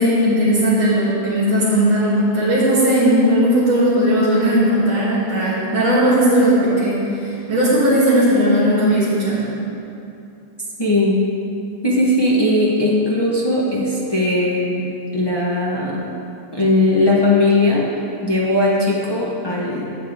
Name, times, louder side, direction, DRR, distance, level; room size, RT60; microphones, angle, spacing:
voice 1, 0.0-9.5, equal, 60° right, -14 dB, 3.4 m, -17 dB
voice 2, 10.8-11.2 11.8-16.1 16.5-17.9 18.2-19.9, left 2 dB, 45° left, -4 dB, 0.3 m, -18 dB
12.0 x 8.0 x 3.5 m, 2.7 s
omnidirectional pair, 2.3 m